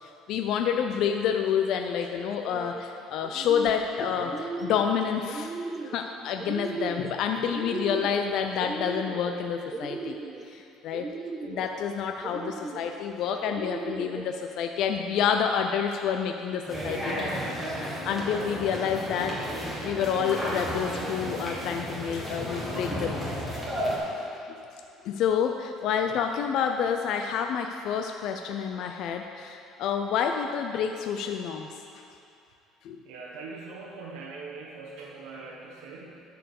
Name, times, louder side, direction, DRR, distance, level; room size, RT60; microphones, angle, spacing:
voice 1, 0.0-5.5 5.9-10.2 10.5-11.1 11.4-17.6 18.0-23.3 24.5-24.6 25.0-31.7 32.8-33.0, left 7 dB, 55° left, 5 dB, 0.4 m, -28 dB
sound 1, 2.3-2.8 3.2-3.9 4.2-4.9 5.3-6.0 6.4-7.1 7.5-8.3 8.6-9.3 9.7-10.4 10.9-11.7 12.2-12.9 13.4-14.2, right 4 dB, 20° right, 0.4 m, -36 dB
sound 2, 16.7-24.0, equal, ahead, 1.8 m, -33 dB
voice 2, 33.0-36.2, right 4 dB, 75° right, -4 dB, 1.1 m, -42 dB
11.0 x 4.6 x 7.0 m, 2.6 s
cardioid pair, 165°, 0 cm